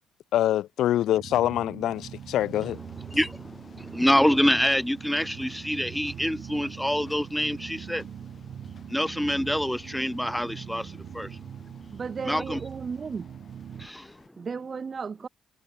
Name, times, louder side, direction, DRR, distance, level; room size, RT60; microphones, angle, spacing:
voice 1, 0.3-2.8, left 12 dB, 80° left, 0.6 m, -25 dB
sound 1, 1.1-13.9, right 9 dB, 60° right, 7.0 m, -42 dB
sound 2, 1.9-14.3, left 6 dB, 45° left, 3.4 m, -55 dB
voice 2, 3.1-8.1 8.9-11.4 12.2-12.6 13.8-14.2, equal, 5° left, 1.5 m, -26 dB
voice 3, 11.9-13.3 14.4-15.3, right 5 dB, 40° right, 1.0 m, -34 dB
cardioid pair, 90°, 0 cm